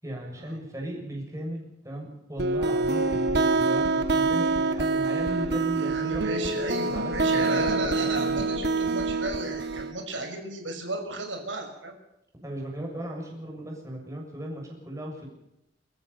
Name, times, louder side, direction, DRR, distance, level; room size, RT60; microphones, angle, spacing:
voice 1, 0.0-6.5 6.9-8.5 12.4-15.3, right 1 dB, 15° right, 0 dB, 6.9 m, -37 dB
sound 1, 2.4-9.9, right 3 dB, 60° right, 1.6 m, -26 dB
voice 2, 5.8-11.9, right 2 dB, 85° right, 2 dB, 5.8 m, -34 dB
27.0 x 14.5 x 7.0 m, 0.87 s
head